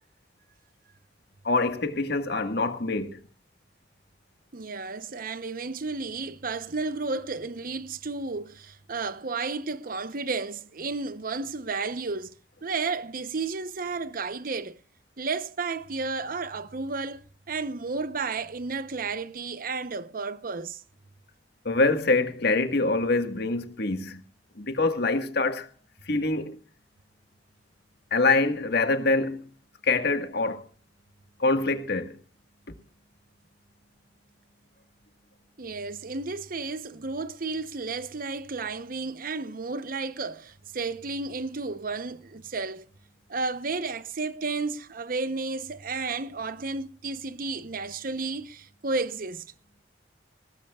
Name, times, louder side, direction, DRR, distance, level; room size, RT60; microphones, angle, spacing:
voice 1, 1.4-3.2 21.6-24.2 24.5-25.7 26.0-26.6 28.1-29.5 29.8-30.6 31.4-32.1, left 3 dB, 65° left, 1.6 m, -25 dB
voice 2, 4.5-14.8 15.2-17.2 17.5-20.8 35.6-42.9 43.3-49.5, right 4 dB, 55° right, 0.8 m, -32 dB
20.0 x 18.0 x 2.4 m
head